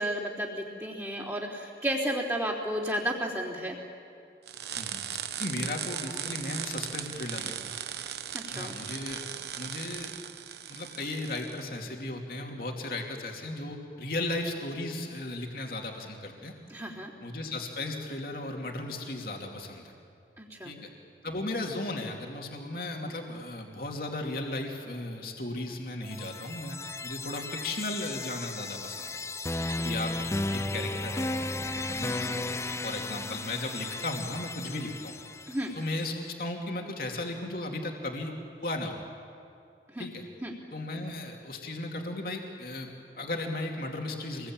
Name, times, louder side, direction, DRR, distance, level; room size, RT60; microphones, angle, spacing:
voice 1, 0.0-3.8 8.3-8.7 16.7-17.1 20.4-20.8 29.7-29.9 35.5-35.7 39.9-40.1 40.4-40.5, right 1 dB, 15° right, -7 dB, 3.6 m, -33 dB
sound 1, 4.5-11.7, right 9 dB, 70° right, 1.1 m, -38 dB
voice 2, 5.4-7.8 8.5-9.3 9.6-10.1 10.7-16.5 17.2-19.9 20.6-20.9 21.2-26.8 27.0-29.2 29.8-30.1 30.5-35.2 35.8-36.1 36.4-39.0 40.0-40.2 40.7-44.5, left 2 dB, 55° left, 1 dB, 2.7 m, -36 dB
sound 2, 26.0-36.0, left 2 dB, 15° left, 0.5 m, -35 dB
26.5 x 21.5 x 8.9 m, 2.6 s
head